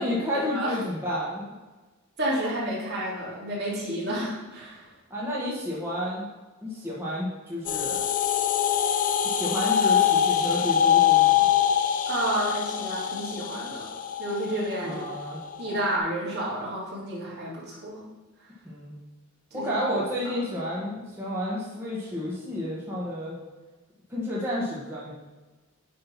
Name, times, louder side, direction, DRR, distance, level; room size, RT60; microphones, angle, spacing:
voice 1, 0.0-1.4 5.1-6.3 6.6-8.1 9.2-11.5 14.8-15.4 18.6-19.0 19.5-23.4 24.1-25.1, left 1 dB, 10° right, -7 dB, 1.7 m, -31 dB
voice 2, 2.2-4.9 12.1-13.9 14.2-15.0 15.6-18.0 19.5-19.7, right 1 dB, 50° right, -6 dB, 3.1 m, -30 dB
sound 1, 7.7-16.0, left 9 dB, 40° left, 0.5 m, -24 dB
10.0 x 3.9 x 5.8 m, 1.2 s
head